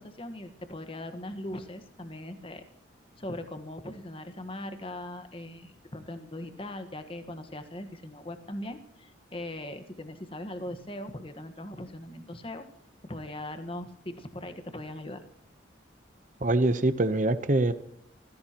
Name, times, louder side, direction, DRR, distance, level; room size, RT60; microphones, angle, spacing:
voice 1, 0.0-2.6 3.2-12.6 13.0-15.2, left 1 dB, 30° left, 8 dB, 1.4 m, -40 dB
voice 2, 16.4-17.7, right 2 dB, 45° right, 11 dB, 0.8 m, -24 dB
27.0 x 16.0 x 3.0 m, 0.74 s
head